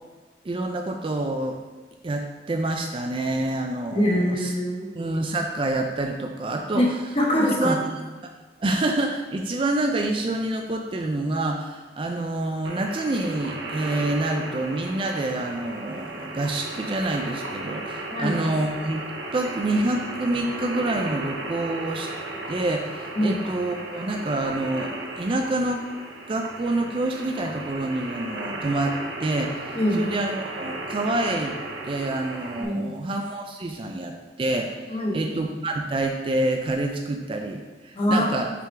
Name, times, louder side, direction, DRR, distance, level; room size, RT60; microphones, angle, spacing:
voice 1, 0.4-1.6 2.0-4.5 4.9-6.8 7.5-7.7 8.6-19.0 19.3-22.1 22.5-25.9 26.3-31.5 31.8-38.5, right 2 dB, 30° right, 3 dB, 0.4 m, -27 dB
voice 2, 3.9-4.9 6.7-7.8 18.1-18.4 23.2-23.4 29.7-30.0 32.6-32.8 34.9-35.2 37.9-38.3, equal, 30° left, -3 dB, 1.2 m, -23 dB
sound 1, 12.6-32.6, right 2 dB, 80° right, 0.7 m, -35 dB
5.8 x 3.7 x 4.4 m, 1.4 s
head